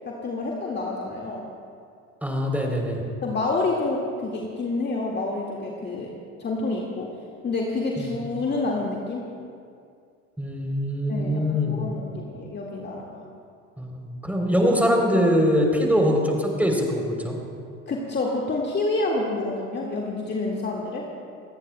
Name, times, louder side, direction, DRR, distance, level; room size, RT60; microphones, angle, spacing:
voice 1, 0.1-1.4 3.2-6.1 6.4-7.1 7.4-9.3 11.1-13.2 17.9-21.1, left 3 dB, 25° left, -2 dB, 1.9 m, -28 dB
voice 2, 2.2-3.0 8.0-8.1 10.4-11.9 13.8-17.4, equal, 5° right, 0 dB, 3.4 m, -23 dB
27.0 x 18.5 x 2.2 m, 2.4 s
figure-of-eight pair, 70°, 43 cm